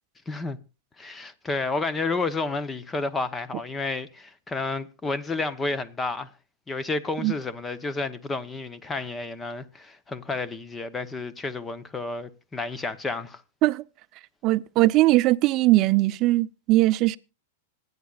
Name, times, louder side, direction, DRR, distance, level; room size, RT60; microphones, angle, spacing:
voice 1, 0.3-0.6 1.0-6.3 6.7-13.4, left 3 dB, 15° left, 0.9 m, -31 dB
voice 2, 14.4-17.2, right 18 dB, 35° right, 0.6 m, -20 dB
26.0 x 9.6 x 2.4 m
supercardioid pair, 140°, 0 cm